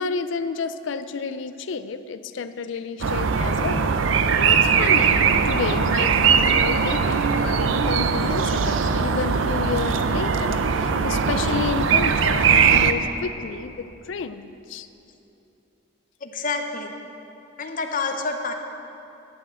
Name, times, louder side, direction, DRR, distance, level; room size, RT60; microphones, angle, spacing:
voice 1, 0.0-14.9, left 5 dB, 70° left, 12 dB, 0.4 m, -31 dB
sound 1, 3.0-12.9, right 6 dB, 75° right, 0.5 m, -20 dB
voice 2, 16.2-16.9 17.6-18.5, left 4 dB, 45° left, 5 dB, 0.8 m, -28 dB
10.5 x 6.5 x 7.5 m, 2.9 s
head